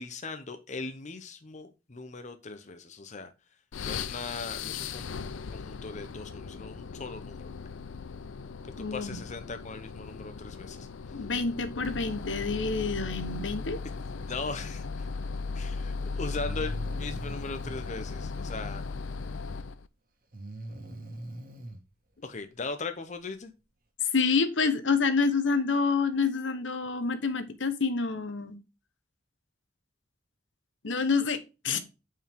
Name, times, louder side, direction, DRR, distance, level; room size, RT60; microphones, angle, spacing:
voice 1, 0.0-3.3 3.8-5.1 5.5-7.5 8.8-10.9 14.3-14.8 15.5-18.8 22.2-23.5, left 3 dB, 40° left, 0.9 m, -39 dB
sound 1, 3.7-19.9, left 4 dB, 90° left, 0.5 m, -37 dB
voice 2, 8.8-9.2 11.1-13.8 24.1-28.6 30.8-31.8, left 4 dB, 70° left, 1.1 m, -28 dB
Breathing, 16.3-17.8 20.3-21.8, right 1 dB, 50° right, 1.9 m, -42 dB
8.9 x 4.7 x 3.6 m
head